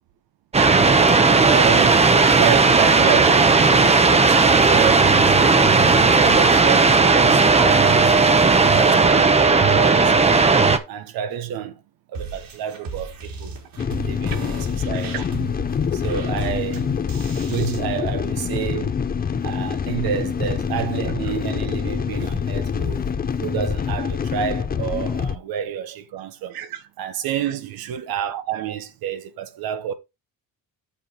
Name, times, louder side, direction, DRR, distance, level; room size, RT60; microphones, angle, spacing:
sound 1, 0.5-10.8, right 4 dB, 20° right, 0.9 m, -15 dB
voice 1, 1.1-5.3 5.8-8.1 8.7-11.8 12.1-13.6 14.0-15.5 15.9-16.9 17.1-17.2 17.5-19.0 19.4-23.1 23.4-29.9, right 9 dB, 90° right, 1.3 m, -29 dB
sound 2, 12.1-17.8, right 4 dB, 75° right, 3.7 m, -36 dB
sound 3, 13.8-25.3, left 6 dB, 25° left, 0.7 m, -25 dB
7.9 x 6.3 x 4.2 m
cardioid pair, 140°, 35 cm